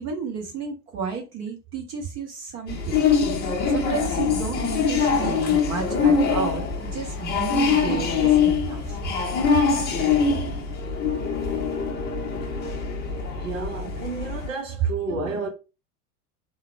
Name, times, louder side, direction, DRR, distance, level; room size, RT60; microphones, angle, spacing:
voice 1, 0.0-3.0 3.7-9.0 15.1-15.4, right 5 dB, 35° right, 1.0 m, -32 dB
sound 1, 2.7-14.5, left 5 dB, 20° left, 0.7 m, -23 dB
voice 2, 13.4-15.5, right 3 dB, 55° right, 0.9 m, -31 dB
3.6 x 2.3 x 4.4 m
figure-of-eight pair, 85°, 47 cm